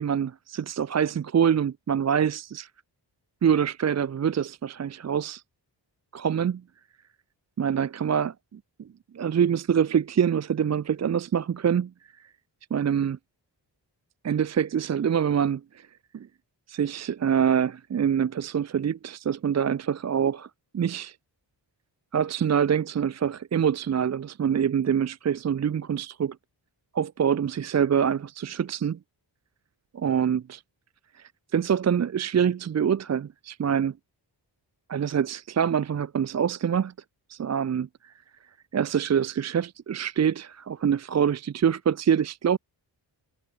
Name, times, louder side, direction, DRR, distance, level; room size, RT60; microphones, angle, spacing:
voice 1, 0.0-2.7 3.4-5.4 6.1-6.6 7.6-8.6 9.1-11.9 12.7-13.2 14.2-15.9 16.1-16.3 16.7-20.5 20.7-21.2 22.1-26.4 26.9-29.0 29.9-30.6 31.1-33.9 34.9-36.9 37.3-38.1 38.7-42.6, right 8 dB, 40° right, 0.4 m, -25 dB
wide cardioid pair, 130°, 44 cm